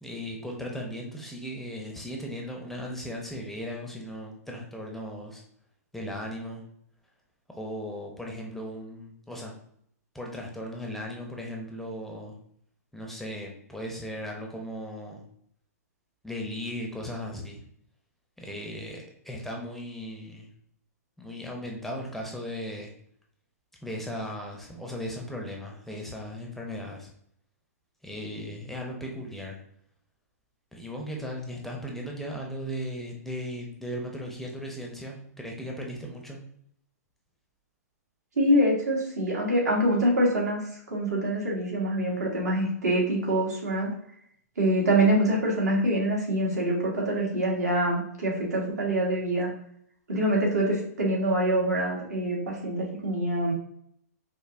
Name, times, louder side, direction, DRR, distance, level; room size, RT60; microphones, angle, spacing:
voice 1, 0.0-5.4 5.9-6.6 7.5-9.5 10.1-12.4 12.9-15.2 16.2-17.6 18.4-20.5 21.2-22.9 23.8-27.1 28.0-29.6 30.7-36.4, equal, 5° left, 0 dB, 0.5 m, -37 dB
voice 2, 38.4-43.9 44.6-49.5 50.1-53.5, right 1 dB, 75° right, -3 dB, 1.4 m, -25 dB
5.1 x 2.1 x 2.5 m, 0.68 s
hypercardioid pair, 120°, 9 cm